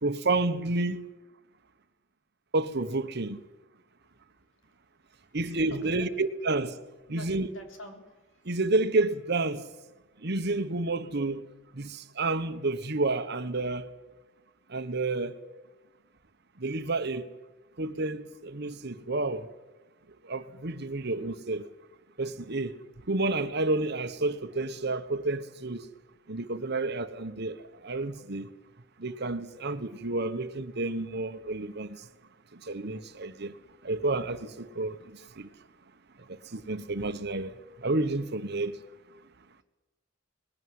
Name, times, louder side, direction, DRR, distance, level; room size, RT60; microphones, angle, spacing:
voice 1, 0.0-1.0 2.5-3.4 5.3-6.8 7.1-7.5 8.5-9.7 10.2-11.5 11.7-13.9 14.7-15.4 16.6-17.3 17.8-19.5 20.2-21.7 22.2-22.8 23.1-25.9 26.3-28.5 29.0-32.1 32.5-33.6 33.8-35.5 36.3-37.5 37.8-38.8, right 2 dB, 55° right, 1.2 m, -30 dB
voice 2, 5.7-6.1 7.1-8.5 10.5-10.6 36.2-36.9 37.2-37.3, left 1 dB, 70° left, 3.8 m, -48 dB
20.0 x 17.5 x 9.5 m
head